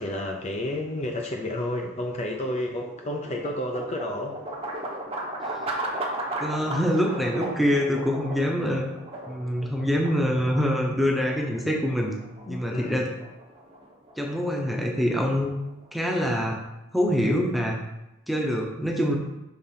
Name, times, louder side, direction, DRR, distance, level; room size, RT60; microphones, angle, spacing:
voice 1, 0.0-4.4 12.5-13.1, left 1 dB, 30° left, 1 dB, 0.6 m, -31 dB
sound 1, 2.1-16.2, right 1 dB, 25° right, 1.0 m, -36 dB
voice 2, 6.4-8.9 9.3-12.2 12.5-13.1 14.2-15.5 15.9-16.6 16.9-17.8 18.3-19.2, equal, ahead, 0 dB, 0.8 m, -25 dB
5.8 x 3.8 x 5.6 m, 0.93 s
head